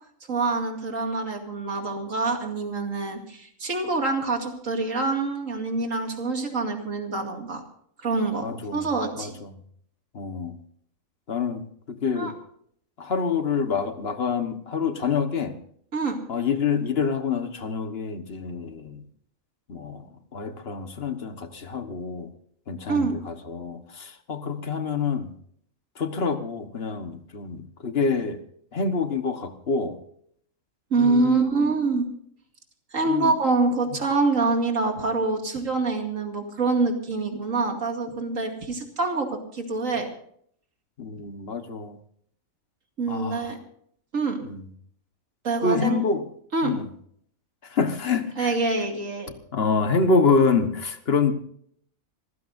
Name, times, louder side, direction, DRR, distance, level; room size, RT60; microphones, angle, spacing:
voice 1, 0.3-7.6 8.0-9.3 12.2-12.3 15.9-16.2 22.9-23.2 30.9-32.1 32.9-40.1 43.0-43.6 44.1-44.4 45.4-46.0 46.5-46.7 48.4-49.3, right 3 dB, 70° right, 3 dB, 2.7 m, -25 dB
voice 2, 8.4-8.8 9.2-9.5 10.1-10.6 11.3-12.3 13.0-15.6 16.3-19.0 19.7-20.1 20.3-22.3 22.7-25.3 26.0-28.4 28.7-30.0 31.0-31.6 33.1-33.3 41.0-42.0 43.1-43.5 44.4-44.7 45.6-46.2 46.6-46.9 47.6-48.5 49.5-51.3, left 5 dB, 50° left, 9 dB, 1.5 m, -26 dB
26.0 x 15.5 x 2.6 m, 0.63 s
omnidirectional pair, 1.4 m